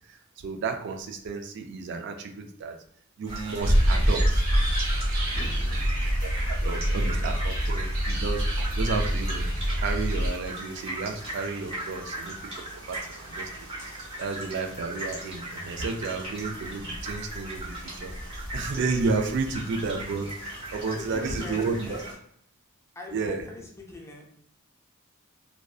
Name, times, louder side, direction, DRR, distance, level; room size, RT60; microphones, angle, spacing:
voice 1, 0.1-2.8 3.2-4.4 6.2-13.5 14.0-22.0 23.1-23.4, right 4 dB, 55° right, 5 dB, 0.3 m, -32 dB
sound 1, 3.2-22.1, right 1 dB, 30° right, 0.8 m, -38 dB
sound 2, 3.6-10.3, equal, 90° right, 1.0 m, -25 dB
voice 2, 5.3-5.9 6.5-7.5 20.9-22.2 23.0-24.3, left 2 dB, 15° left, -1 dB, 0.4 m, -42 dB
2.5 x 2.1 x 2.3 m, 0.65 s
head